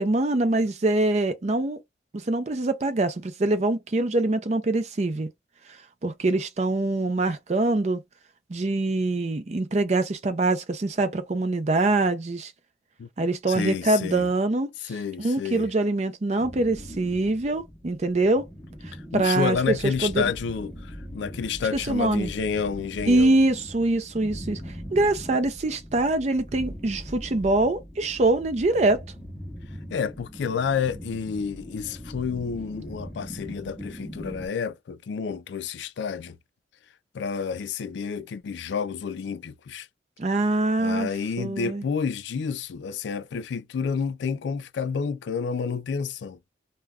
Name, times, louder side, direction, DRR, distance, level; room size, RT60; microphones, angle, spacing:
voice 1, 0.0-1.8 2.2-5.3 6.0-8.0 8.5-12.5 13.2-14.7 15.2-18.5 19.1-20.3 21.9-22.3 23.1-24.6 24.9-29.0 40.2-41.1 41.4-41.8, right 2 dB, 40° right, 0.5 m, -24 dB
voice 2, 13.5-14.3 14.8-15.7 18.9-23.4 29.9-36.4 37.1-39.9 40.8-46.4, left 6 dB, 80° left, 0.4 m, -30 dB
sound 1, 16.4-34.5, equal, 10° left, 0.7 m, -41 dB
2.3 x 2.2 x 3.4 m
head